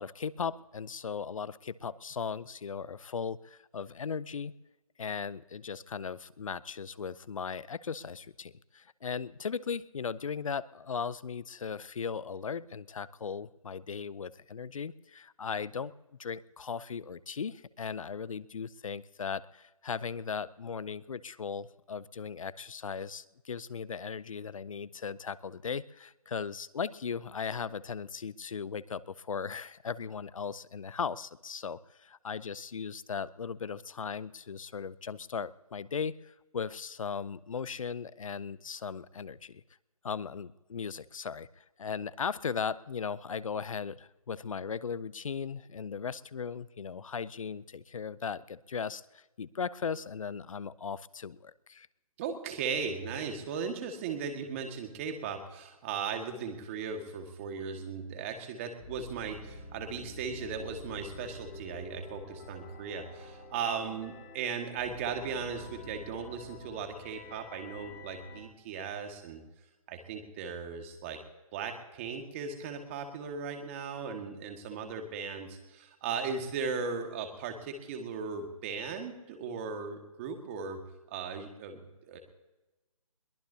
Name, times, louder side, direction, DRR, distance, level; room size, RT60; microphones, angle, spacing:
voice 1, 0.0-4.5 5.0-15.9 16.2-39.6 40.0-51.9, left 6 dB, 65° left, 19 dB, 0.7 m, -37 dB
voice 2, 52.2-69.4 69.9-71.2 71.5-80.8 81.1-82.2, right 5 dB, 20° right, 5 dB, 1.8 m, -37 dB
sound 1, 58.8-68.4, left 1 dB, 30° left, 2.1 m, -47 dB
22.5 x 18.5 x 2.8 m, 1.1 s
hypercardioid pair, 160°, 19 cm